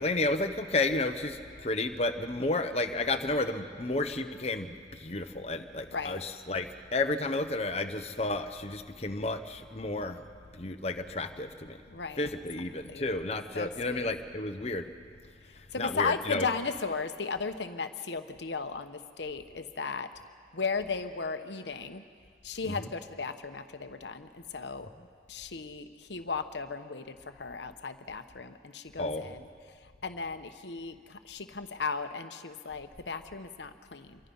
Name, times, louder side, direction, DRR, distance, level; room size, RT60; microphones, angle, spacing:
voice 1, 0.0-4.7 5.0-10.2 10.5-11.8 12.2-14.9 15.8-16.5 22.7-22.9 29.0-29.3, left 2 dB, 35° left, 6 dB, 1.0 m, -32 dB
voice 2, 5.9-6.2 11.9-12.2 12.9-13.0 13.5-14.1 15.7-20.1 20.5-22.0 22.4-24.9 25.3-29.5 30.0-34.2, left 4 dB, 85° left, 9 dB, 1.0 m, -36 dB
27.0 x 23.5 x 5.5 m, 2.1 s
head